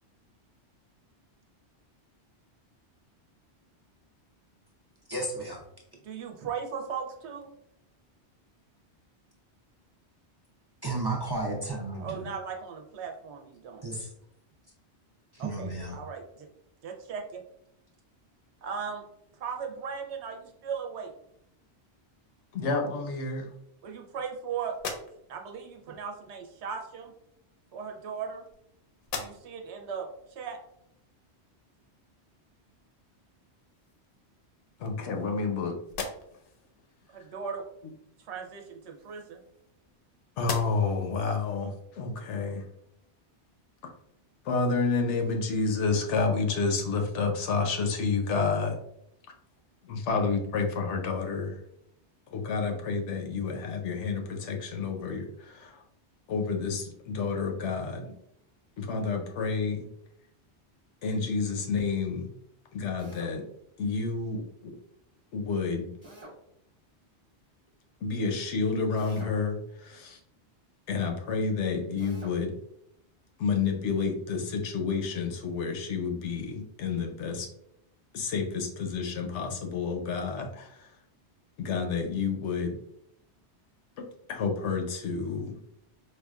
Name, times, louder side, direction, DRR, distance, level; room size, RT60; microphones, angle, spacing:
voice 1, 5.1-5.6 10.8-12.3 13.8-14.1 15.3-16.0, right 2 dB, 35° right, -1 dB, 0.4 m, -33 dB
voice 2, 6.0-7.5 12.0-13.8 15.4-16.5 16.8-17.4 18.6-19.0 19.4-21.1 23.8-24.8 25.3-27.1 27.7-28.5 29.2-30.6 37.1-37.6 38.2-39.4, right 6 dB, 80° right, 3 dB, 0.9 m, -37 dB
voice 3, 22.5-23.5 34.8-35.8 40.4-42.6 44.4-48.8 49.8-51.6 52.3-55.8 56.3-58.1 58.8-59.9 61.0-62.3 62.7-63.5 63.8-64.8 65.3-65.9 68.0-70.2 70.9-72.6 73.4-77.5 78.1-80.9 81.6-82.8 84.0-85.6, left 4 dB, 90° left, 4 dB, 1.0 m, -30 dB
sound 1, 24.7-25.6 26.7-26.8 27.8-28.7 29.0-29.7 30.2-30.3 33.0-33.1 33.5-34.2 34.8-35.5 35.8-36.6 38.6-40.0 40.4-41.1, left 4 dB, 60° left, 0.7 m, -40 dB
Drill, 63.0-63.4 66.0-66.4 69.0-69.4 72.0-72.4, right 1 dB, 10° right, 0.8 m, -47 dB
4.6 x 2.3 x 2.3 m, 0.76 s
omnidirectional pair, 1.1 m